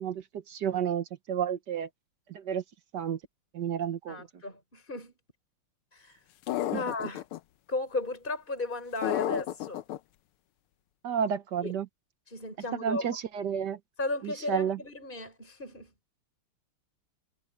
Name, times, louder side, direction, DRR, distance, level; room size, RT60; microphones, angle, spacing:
voice 1, 0.0-1.9 2.3-2.6 2.9-3.2 3.5-4.3 6.7-6.8 11.0-11.9 12.8-13.8 14.2-14.8, right 8 dB, 60° right, 1.5 m, -31 dB
voice 2, 4.1-5.1 5.9-6.2 6.7-7.2 7.7-9.8 11.6-11.7 12.3-13.1 14.0-15.9, left 2 dB, 20° left, 5.0 m, -35 dB
sound 1, 6.5-7.4 9.0-10.0, left 13 dB, 80° left, 1.6 m, -31 dB
omnidirectional pair, 2.4 m